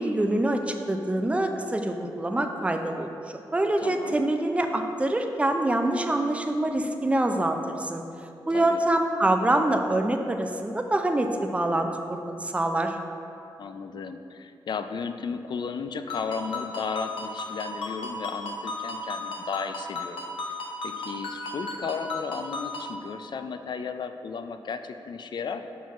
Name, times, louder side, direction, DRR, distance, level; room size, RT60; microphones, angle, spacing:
voice 1, 0.0-3.1 3.5-8.0 8.5-13.0, right 1 dB, 15° right, 5 dB, 0.5 m, -25 dB
voice 2, 3.8-4.2 8.5-8.8 13.6-20.2 20.5-20.6 20.8-25.6, left 5 dB, 60° left, 8 dB, 0.4 m, -34 dB
Ringtone, 16.1-23.0, left 2 dB, 85° left, 0.8 m, -35 dB
5.9 x 4.6 x 4.6 m, 2.7 s
cardioid pair, 60°, 9 cm